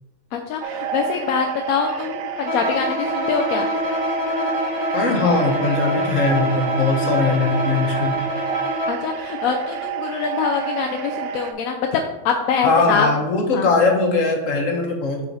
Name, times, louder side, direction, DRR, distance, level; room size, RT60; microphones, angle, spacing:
voice 1, 0.3-3.7 8.9-12.0 12.2-13.1 13.5-13.7, left 6 dB, 85° left, 3 dB, 1.0 m, -24 dB
sound 1, 0.6-11.5, right 7 dB, 80° right, 1.0 m, -29 dB
Bowed string instrument, 2.4-9.1, left 1 dB, 25° left, 0.8 m, -26 dB
voice 2, 4.9-8.1 12.6-15.3, left 3 dB, 65° left, 2 dB, 1.5 m, -20 dB
7.2 x 4.2 x 4.1 m, 1.0 s
omnidirectional pair, 1.4 m